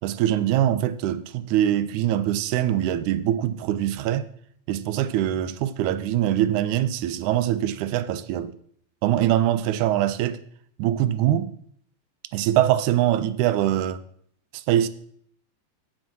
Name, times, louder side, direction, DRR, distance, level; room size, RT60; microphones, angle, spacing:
voice 1, 0.0-4.2 4.7-8.5 9.0-10.4 10.8-11.6 12.3-14.0 14.5-14.9, right 12 dB, 80° right, 2.0 m, -23 dB
7.5 x 7.4 x 6.0 m
omnidirectional pair, 3.6 m